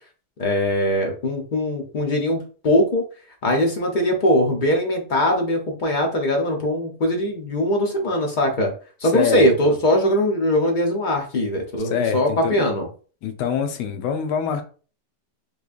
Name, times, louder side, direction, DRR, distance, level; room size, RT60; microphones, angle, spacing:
voice 1, 0.4-3.0 3.4-8.7 9.0-12.9, left 1 dB, 60° left, 2 dB, 0.5 m, -21 dB
voice 2, 9.0-9.8 11.8-12.7 13.2-14.6, left 7 dB, 90° left, 7 dB, 1.3 m, -25 dB
3.7 x 3.2 x 2.4 m, 0.38 s
omnidirectional pair, 1.8 m